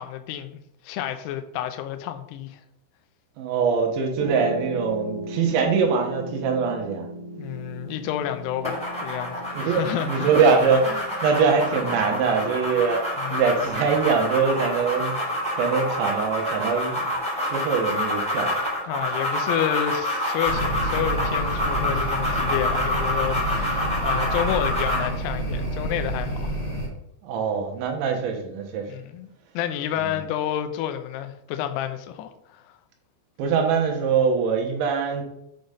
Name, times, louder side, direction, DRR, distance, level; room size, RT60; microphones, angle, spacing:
voice 1, 0.0-2.6 7.4-10.4 11.9-12.0 13.2-13.4 18.8-26.6 28.9-29.3 29.5-32.6, left 11 dB, 80° left, 2.4 m, -30 dB
voice 2, 3.4-7.1 9.6-13.0 13.3-15.1 15.5-17.2 17.5-18.6 27.2-28.9 30.0-30.1 33.4-35.2, right 5 dB, 75° right, 3.5 m, -23 dB
Piano, 4.2-16.4, right 1 dB, 40° left, 1.9 m, -38 dB
sound 1, 8.6-25.1, left 1 dB, ahead, 1.7 m, -27 dB
sound 2, 20.4-26.9, right 1 dB, 20° right, 2.3 m, -29 dB
8.7 x 4.0 x 5.1 m
omnidirectional pair, 5.6 m